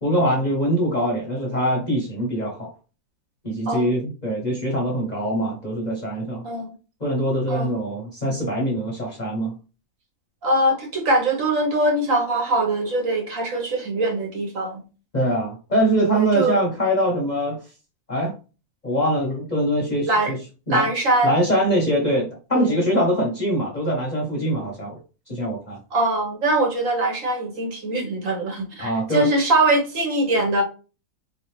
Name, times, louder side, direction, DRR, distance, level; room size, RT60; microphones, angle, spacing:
voice 1, 0.0-2.7 3.4-6.5 7.0-9.5 15.1-17.6 18.1-18.3 18.8-20.4 20.7-20.9 21.2-25.0 25.3-25.8 28.8-29.3, equal, 35° left, -1 dB, 0.8 m, -23 dB
voice 2, 6.4-6.7 7.5-7.7 10.4-14.8 16.1-16.6 20.1-20.3 20.7-21.3 22.5-22.8 25.9-30.6, right 2 dB, 60° right, 1 dB, 1.4 m, -22 dB
3.8 x 3.0 x 3.1 m, 0.34 s
omnidirectional pair, 1.6 m